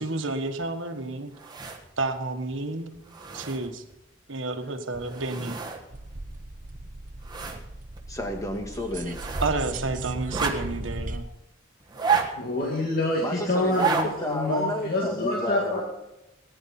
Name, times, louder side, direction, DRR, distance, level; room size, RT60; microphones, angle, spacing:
voice 1, 0.0-1.3 2.0-2.9 3.3-3.8 4.3-5.6 9.4-11.3, right 2 dB, 70° right, 6 dB, 1.3 m, -30 dB
sound 1, 1.3-2.0 2.5-2.6 2.9-3.9 4.9-5.8 6.1-6.2 6.7-7.6 8.0-8.1 9.0-9.6 10.2-10.9 11.8-12.6 13.6-14.1 14.5-14.6, right 6 dB, 20° right, 1.5 m, -30 dB
sound 2, 5.9-11.2, right 2 dB, 40° right, 0.9 m, -36 dB
voice 2, 8.1-9.2 13.2-15.8, left 1 dB, 15° left, 3 dB, 1.8 m, -32 dB
voice 3, 12.4-15.8, left 2 dB, 45° left, -3 dB, 2.2 m, -26 dB
18.5 x 10.0 x 4.3 m, 0.93 s
head